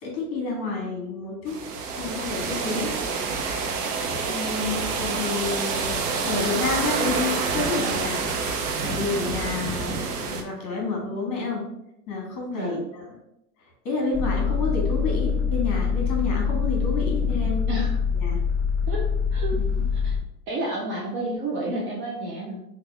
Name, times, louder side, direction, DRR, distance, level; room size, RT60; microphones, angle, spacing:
voice 1, 0.0-1.6 2.0-3.0 4.3-6.0 6.2-8.3 8.8-11.7 12.1-13.0 13.8-17.7 18.2-18.4 19.5-19.9, left 3 dB, 40° left, 0 dB, 1.5 m, -29 dB
sound 1, 1.5-10.4, right 4 dB, 75° right, 0.8 m, -27 dB
sound 2, 14.1-20.2, left 6 dB, 5° left, 0.9 m, -24 dB
voice 2, 17.7-18.0 18.9-19.6 20.0-20.2 20.5-22.6, right 1 dB, 25° right, -3 dB, 0.4 m, -30 dB
3.4 x 2.4 x 3.3 m, 0.83 s
hypercardioid pair, 120°, 48 cm